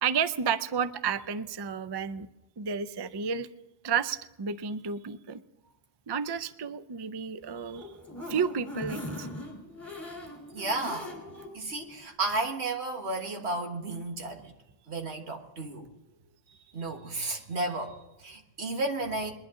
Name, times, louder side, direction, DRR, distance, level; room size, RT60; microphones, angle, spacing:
voice 1, 0.0-2.3 2.6-3.5 3.8-5.4 6.1-7.9 8.3-9.3, right 6 dB, 40° right, 13 dB, 0.3 m, -31 dB
sound 1, 7.5-11.5 11.9-12.0 12.3-12.4, left 1 dB, ahead, 3.1 m, -40 dB
voice 2, 10.5-11.1 11.5-14.5 14.9-15.9 16.7-19.3, right 2 dB, 80° right, 3 dB, 1.8 m, -33 dB
21.5 x 11.5 x 3.7 m, 0.99 s
omnidirectional pair, 1.1 m